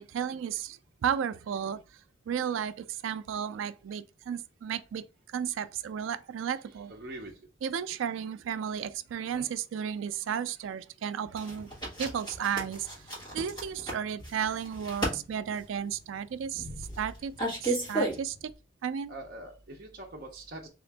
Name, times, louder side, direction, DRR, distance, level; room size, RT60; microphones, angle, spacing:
voice 1, 0.0-1.8 2.3-6.9 7.6-11.7 12.0-12.9 13.3-18.5 18.8-19.1, right 8 dB, 90° right, 0.3 m, -33 dB
voice 2, 6.9-7.3 9.2-9.5 19.1-20.7, right 1 dB, 50° right, 0.6 m, -43 dB
sound 1, 11.4-18.5, right 2 dB, 25° left, 1.3 m, -34 dB
3.6 x 2.5 x 3.3 m
head